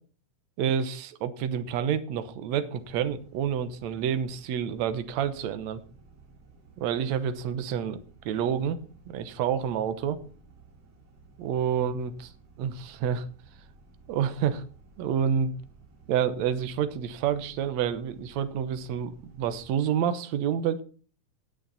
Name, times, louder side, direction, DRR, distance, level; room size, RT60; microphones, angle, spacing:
voice 1, 0.6-5.8 6.8-8.8 9.1-10.2 11.4-12.3 12.6-13.3 14.1-14.6 15.0-15.5 16.1-19.1 19.4-20.8, right 8 dB, 70° right, 11 dB, 2.2 m, -28 dB
sound 1, 2.7-19.7, right 3 dB, 55° right, 4.1 m, -55 dB
18.5 x 6.6 x 4.1 m, 0.39 s
omnidirectional pair, 3.6 m